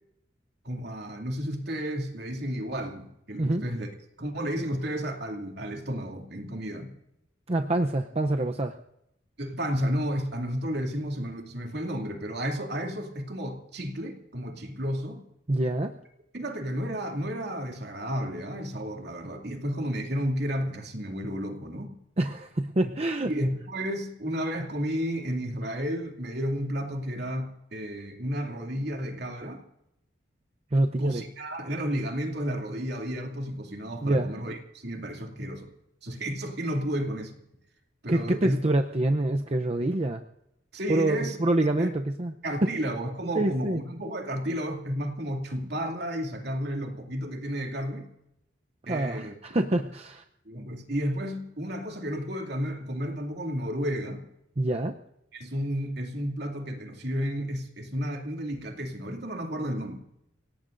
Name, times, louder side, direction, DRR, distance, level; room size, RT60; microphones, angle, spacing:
voice 1, 0.6-3.9 4.2-6.9 9.4-15.2 16.3-21.9 23.2-29.6 31.0-35.7 36.0-37.4 38.0-38.7 40.7-41.4 41.8-41.9 42.4-48.1 48.9-49.3 50.4-54.3 55.3-60.0, equal, 60° right, 2 dB, 2.7 m, -32 dB
voice 2, 7.5-8.8 15.5-16.0 22.2-23.3 30.7-31.2 34.0-34.3 38.1-40.2 40.9-42.3 43.4-43.8 48.9-50.2 54.6-55.0, right 1 dB, 35° right, 5 dB, 0.7 m, -26 dB
28.5 x 18.0 x 2.6 m, 0.81 s
head